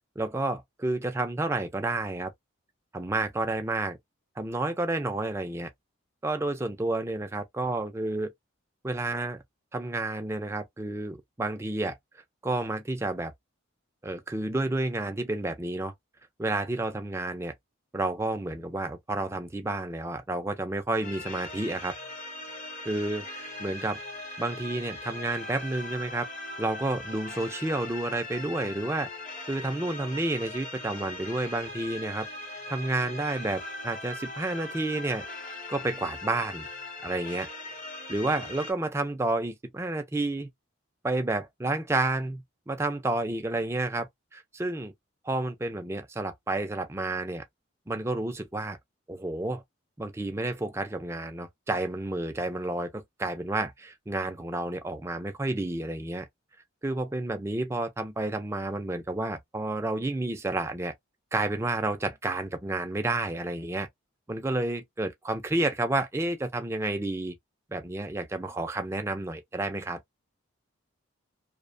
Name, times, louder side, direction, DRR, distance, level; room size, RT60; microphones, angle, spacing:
voice 1, 0.2-2.3 2.9-4.0 4.4-5.7 6.2-8.3 8.8-9.4 9.7-12.0 12.4-13.3 14.0-15.9 16.4-17.5 17.9-21.9 22.9-24.0 24.4-26.3 26.6-29.1 29.5-32.3 32.7-35.3 35.7-36.7 37.0-37.5 38.1-40.5 41.0-44.9 45.2-47.4 47.9-48.8 49.1-49.6 50.0-56.3 56.8-60.9 61.3-63.9 64.3-67.4 67.7-70.0, right 2 dB, 15° right, 0.3 m, -30 dB
sound 1, 21.0-38.7, left 2 dB, 35° left, 0.7 m, -40 dB
2.6 x 2.1 x 2.5 m
head